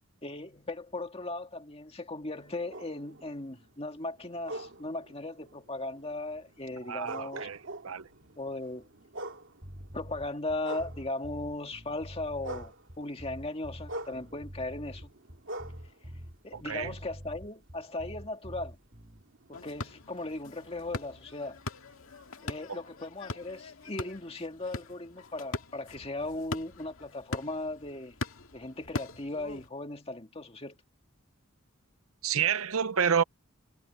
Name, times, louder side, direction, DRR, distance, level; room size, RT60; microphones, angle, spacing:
voice 1, 0.2-7.5 8.4-8.9 9.9-15.1 16.4-18.8 19.5-21.6 22.4-28.2 28.5-30.8, left 2 dB, 30° left, 2.1 m, -37 dB
sound 1, 2.3-11.6 11.9-17.1 17.6-21.2, right 1 dB, 60° right, 2.6 m, -46 dB
voice 2, 6.8-7.6 7.8-8.1 16.5-16.9 22.7-22.8 32.2-33.2, right 7 dB, 90° right, 0.9 m, -29 dB
sound 2, 9.6-19.2, equal, 30° right, 2.5 m, -46 dB
sound 3, 19.5-29.7, left 2 dB, 80° left, 2.0 m, -42 dB
head